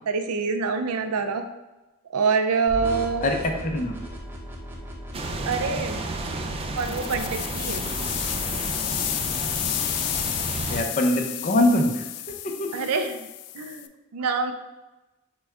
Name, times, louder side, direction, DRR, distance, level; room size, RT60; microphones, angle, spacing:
voice 1, 0.1-1.4 2.1-3.3 5.5-6.0 6.7-7.9 12.7-13.2 13.5-14.5, right 5 dB, 85° right, 7 dB, 0.5 m, -26 dB
sound 1, 2.7-8.7, equal, 10° right, 0.8 m, -37 dB
voice 2, 3.2-3.9 10.7-12.0 12.4-12.7, left 1 dB, 35° left, 3 dB, 0.6 m, -23 dB
sound 2, 5.1-10.8, right 2 dB, 25° right, 0.3 m, -32 dB
sound 3, 6.8-13.9, left 13 dB, 85° left, 0.3 m, -31 dB
6.0 x 2.2 x 3.5 m, 1.1 s
head